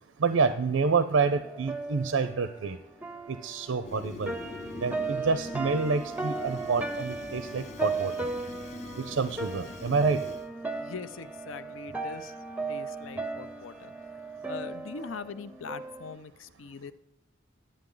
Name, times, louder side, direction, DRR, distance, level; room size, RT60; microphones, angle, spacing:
voice 1, 0.2-2.8 3.3-4.4 4.8-8.1 9.0-10.2, right 4 dB, 90° right, 11 dB, 0.5 m, -28 dB
sound 1, 1.2-16.1, right 3 dB, 10° right, 0.5 m, -36 dB
Fire, 3.8-10.5, left 3 dB, 35° left, 0.6 m, -44 dB
voice 2, 10.8-12.3 12.7-13.9 14.5-16.9, left 5 dB, 80° left, 13 dB, 0.5 m, -41 dB
12.0 x 8.8 x 3.8 m, 0.92 s
head